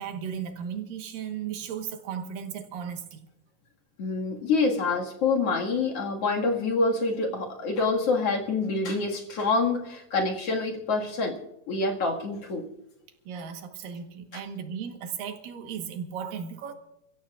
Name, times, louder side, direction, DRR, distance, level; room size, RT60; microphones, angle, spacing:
voice 1, 0.0-3.3 13.3-16.7, right 7 dB, 80° right, 3.0 m, -36 dB
voice 2, 4.0-11.4 11.7-12.7, left 3 dB, 50° left, 2.7 m, -26 dB
29.0 x 15.0 x 2.5 m
omnidirectional pair, 3.9 m